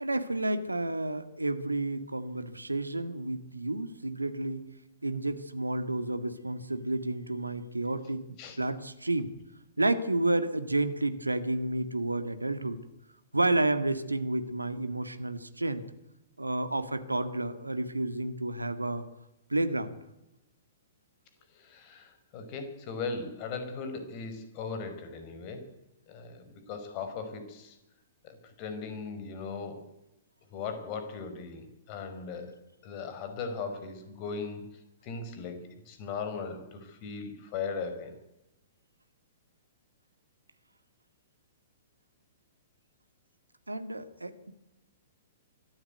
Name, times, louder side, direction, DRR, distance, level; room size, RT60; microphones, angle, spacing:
voice 1, 0.0-4.6 5.0-8.2 8.6-9.3 9.8-12.8 13.3-15.8 16.4-19.0 19.5-20.0 43.7-44.5, right 2 dB, 85° right, 11 dB, 1.9 m, -30 dB
voice 2, 21.5-25.6 26.1-27.8 28.2-29.8 30.5-32.6 32.8-34.6 35.0-38.1, left 5 dB, 35° left, 8 dB, 4.9 m, -38 dB
24.0 x 13.5 x 9.5 m, 0.94 s
figure-of-eight pair, 110°, 0 cm